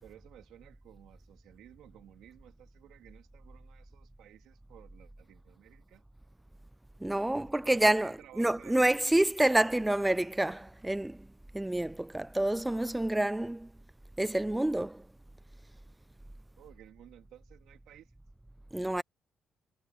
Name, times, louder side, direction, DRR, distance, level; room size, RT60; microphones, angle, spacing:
voice 1, 0.0-6.0 7.3-9.3 16.6-18.1, right 12 dB, 85° right, 3.1 m, -56 dB
voice 2, 7.0-11.2 11.5-13.7 14.2-15.0 18.7-19.0, right 1 dB, 10° right, 0.3 m, -28 dB
cardioid pair, 90°, 0 cm